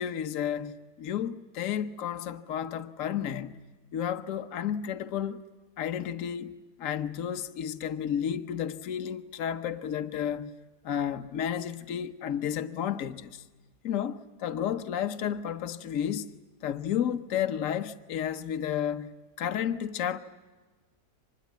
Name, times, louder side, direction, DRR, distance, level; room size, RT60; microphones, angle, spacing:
voice 1, 0.0-3.6 3.9-5.5 5.8-10.5 10.8-13.4 13.8-16.3 16.6-19.1 19.4-20.2, left 9 dB, 55° left, 1.3 m, -32 dB
25.0 x 21.0 x 9.4 m
omnidirectional pair, 1.7 m